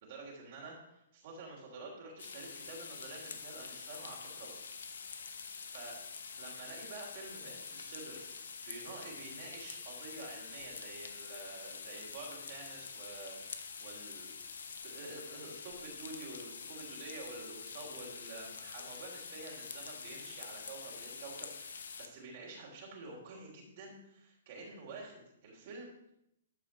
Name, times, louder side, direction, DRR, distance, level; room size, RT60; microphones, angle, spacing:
voice 1, 0.0-4.5 5.7-6.0 6.4-14.3 14.8-26.1, right 3 dB, 50° right, -3 dB, 3.1 m, -49 dB
sound 1, 2.2-22.1, left 5 dB, 75° left, 1.0 m, -46 dB
12.5 x 4.9 x 5.2 m, 0.80 s
hypercardioid pair, 135°, 0 cm